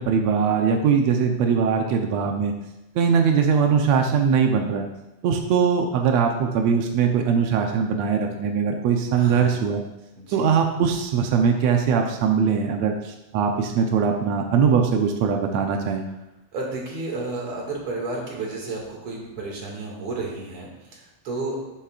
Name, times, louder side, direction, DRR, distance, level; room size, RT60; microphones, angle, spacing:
voice 1, 0.0-2.5 2.9-4.9 5.2-9.8 10.3-16.0, right 6 dB, 85° right, 3 dB, 1.5 m, -21 dB
voice 2, 9.1-9.6 10.2-10.4 16.5-21.6, right 3 dB, 45° right, -2 dB, 2.7 m, -32 dB
10.5 x 10.5 x 2.5 m, 0.94 s
omnidirectional pair, 4.2 m